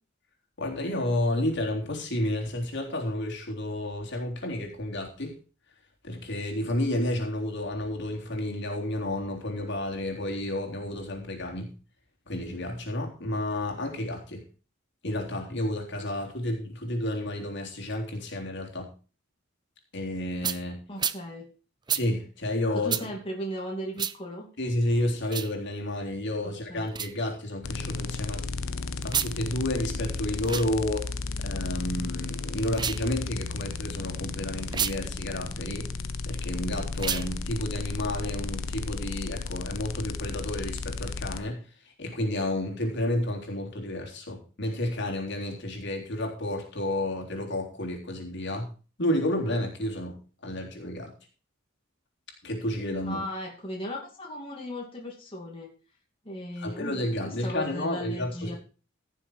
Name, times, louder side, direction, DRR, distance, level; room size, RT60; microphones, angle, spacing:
voice 1, 0.6-5.4 6.0-11.7 12.3-14.4 15.0-18.9 19.9-20.8 21.9-22.9 24.6-28.4 29.0-31.1 31.4-35.9 36.3-41.6 42.0-48.7 49.0-50.2 50.4-51.1 52.4-53.2 56.6-58.6, left 1 dB, 60° left, 1 dB, 3.6 m, -31 dB
sound 1, 20.4-20.6 21.0-21.2 21.9-22.0 22.9-23.1 24.0-24.2 25.2-25.5 26.9-27.1 29.0-29.3 30.4-30.7 32.7-33.1 34.7-35.0 37.0-37.3, right 8 dB, 20° right, 0.5 m, -29 dB
voice 2, 20.9-21.5 22.7-24.5 26.4-26.9 53.0-55.7 56.2-58.5, equal, 25° left, -1 dB, 2.6 m, -37 dB
sound 2, 27.6-41.4, left 4 dB, 85° left, 1.0 m, -34 dB
16.0 x 7.1 x 4.6 m, 0.35 s
head